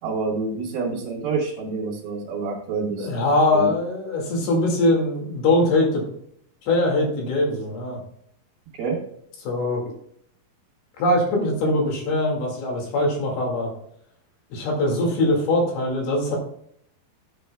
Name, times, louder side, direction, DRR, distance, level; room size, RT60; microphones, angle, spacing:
voice 1, 0.0-3.1 3.5-3.7 8.7-9.0, right 4 dB, 75° right, -4 dB, 3.5 m, -27 dB
voice 2, 3.0-6.0 6.6-8.0 9.4-9.8 11.0-13.7 14.5-16.4, left 2 dB, 80° left, 0 dB, 4.0 m, -22 dB
14.0 x 7.4 x 2.3 m, 0.70 s
omnidirectional pair, 4.3 m